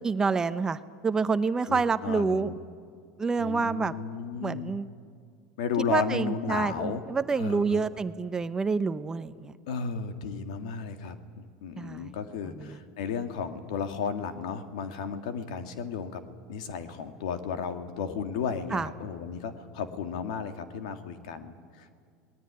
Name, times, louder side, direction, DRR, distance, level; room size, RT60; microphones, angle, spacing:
voice 1, 0.0-2.5 3.2-3.9 4.4-4.9 5.8-9.5 11.8-12.1 12.5-12.8 18.7-18.9, right 4 dB, 20° right, 12 dB, 0.8 m, -28 dB
voice 2, 1.7-2.6 3.4-4.7 5.6-7.0 7.4-7.8 9.7-16.2 16.5-21.9, left 6 dB, 85° left, 7 dB, 1.9 m, -34 dB
27.0 x 19.5 x 9.7 m, 2.2 s
supercardioid pair, 120°, 4 cm